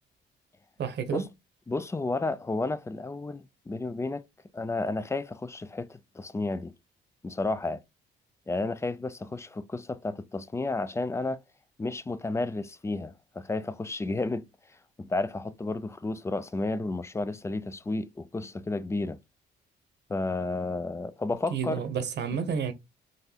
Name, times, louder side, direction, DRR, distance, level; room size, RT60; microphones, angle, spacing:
voice 1, 0.8-1.3 21.5-22.7, right 6 dB, 60° right, 0.9 m, -30 dB
voice 2, 1.7-4.2 4.5-6.7 7.2-7.8 8.5-11.4 11.8-14.5 15.0-19.2 20.1-21.8, left 2 dB, 15° left, 0.3 m, -32 dB
3.9 x 2.5 x 2.8 m
cardioid pair, 90°, 20 cm